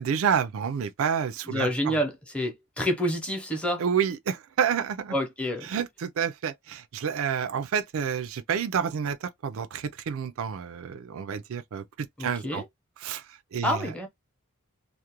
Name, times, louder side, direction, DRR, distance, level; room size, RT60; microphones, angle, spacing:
voice 1, 0.0-1.9 3.8-5.1 5.7-12.6 13.0-13.2 13.5-13.9, right 7 dB, 65° right, 0.4 m, -29 dB
voice 2, 1.5-3.8 5.1-5.7 12.2-12.6 13.6-14.1, equal, 5° left, 0.7 m, -28 dB
2.4 x 2.1 x 2.9 m
head